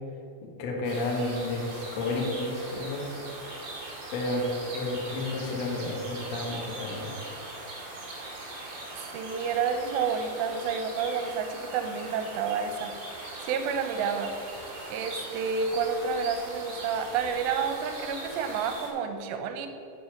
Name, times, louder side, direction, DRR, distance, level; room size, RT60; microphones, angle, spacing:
voice 1, 0.4-3.1 4.1-7.1, left 2 dB, 75° left, 0 dB, 1.5 m, -31 dB
sound 1, 0.8-18.9, right 2 dB, 40° right, 2.2 m, -40 dB
voice 2, 9.1-12.9 13.4-14.3 14.8-19.7, right 6 dB, 80° right, 6 dB, 2.9 m, -30 dB
9.4 x 7.2 x 5.9 m, 2.8 s
omnidirectional pair, 5.1 m